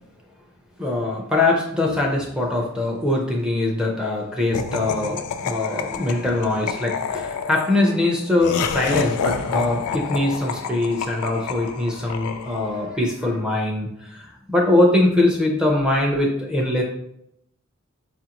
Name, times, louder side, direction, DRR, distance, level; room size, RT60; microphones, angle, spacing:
voice 1, 0.8-16.8, left 2 dB, 5° right, -1 dB, 0.4 m, -22 dB
Laughter, 4.5-12.9, left 6 dB, 90° left, 0.3 m, -29 dB
4.7 x 2.5 x 2.8 m, 0.78 s
head